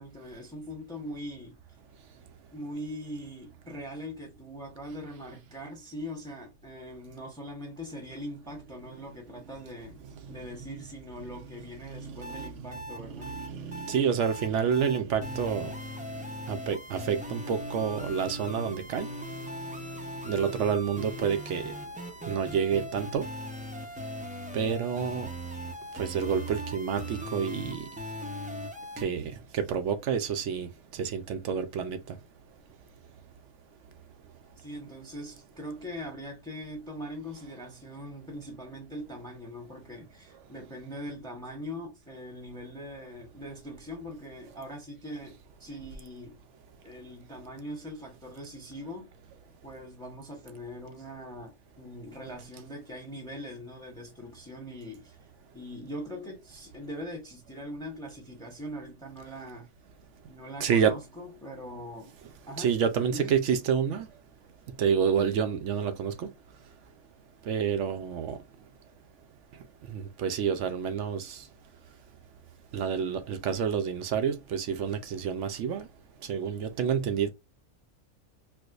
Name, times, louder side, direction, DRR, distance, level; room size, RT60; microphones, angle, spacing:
voice 1, 0.0-1.6 2.5-10.0 10.3-13.4 34.6-46.4 46.8-49.1 49.6-55.2 55.5-59.7 60.3-62.1 62.5-62.7 63.1-63.3, equal, 5° left, 0.9 m, -41 dB
voice 2, 11.9-12.5 13.1-15.7 16.5-19.1 20.2-21.7 22.3-23.3 24.5-25.3 25.9-27.9 29.0-32.2 60.6-61.0 62.6-64.1 64.8-66.3 67.4-68.4 69.9-71.4 72.7-75.9 76.2-77.3, right 7 dB, 70° right, 0.8 m, -29 dB
sound 1, 12.2-29.0, equal, 10° right, 0.3 m, -39 dB
4.5 x 2.1 x 2.4 m
omnidirectional pair, 1.4 m